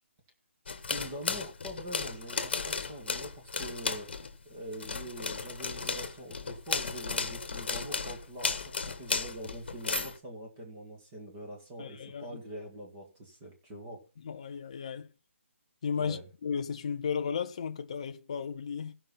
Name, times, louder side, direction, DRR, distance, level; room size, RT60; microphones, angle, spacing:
sound 1, 0.7-4.4 4.7-10.2, left 5 dB, 50° left, 1.3 m, -35 dB
voice 1, 0.9-4.1 4.5-14.0 16.0-16.3, right 1 dB, 15° right, 1.8 m, -43 dB
voice 2, 11.8-12.3 14.2-15.1 15.8-18.9, left 6 dB, 30° left, 0.5 m, -34 dB
16.0 x 5.6 x 5.6 m
hypercardioid pair, 175°, 7 cm